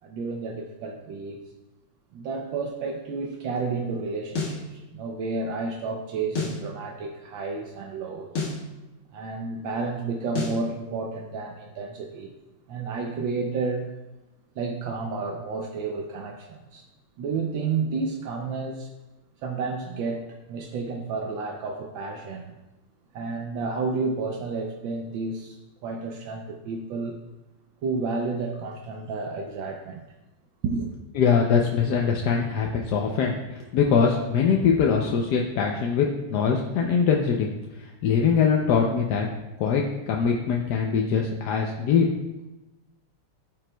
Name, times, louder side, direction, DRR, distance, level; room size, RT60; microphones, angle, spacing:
voice 1, 0.0-1.4 2.1-8.3 9.1-12.3 12.7-13.9 14.6-16.9 17.2-18.9 19.4-22.5 23.1-27.2 27.8-30.0 30.6-30.9, right 4 dB, 75° right, 2 dB, 1.4 m, -31 dB
sound 1, 4.3-4.6 6.3-6.6 8.3-8.6 10.3-10.6, left 3 dB, 85° left, 2.4 m, -29 dB
voice 2, 31.2-37.5 38.0-39.3 39.6-42.1, left 6 dB, 70° left, 0 dB, 1.0 m, -22 dB
13.0 x 6.0 x 2.2 m, 1.0 s
omnidirectional pair, 2.2 m